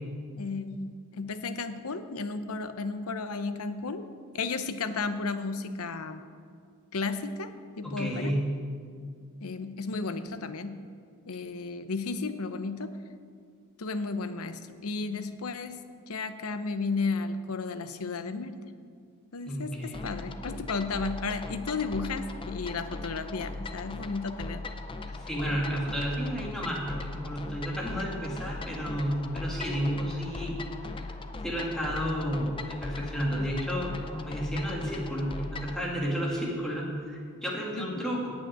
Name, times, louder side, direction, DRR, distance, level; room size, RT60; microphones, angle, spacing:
voice 1, 0.4-4.1 4.3-6.2 6.9-8.3 9.4-10.8 11.3-13.0 13.8-15.8 16.1-18.6 19.3-24.6 37.8-38.1, left 4 dB, 75° left, 10 dB, 0.7 m, -33 dB
voice 2, 7.8-8.5 19.5-20.0 25.1-30.6 30.9-31.0 31.4-38.3, equal, 5° left, -5 dB, 2.3 m, -32 dB
sound 1, 19.9-35.8, left 2 dB, 25° left, 0.5 m, -39 dB
8.8 x 8.6 x 8.9 m, 2.2 s
head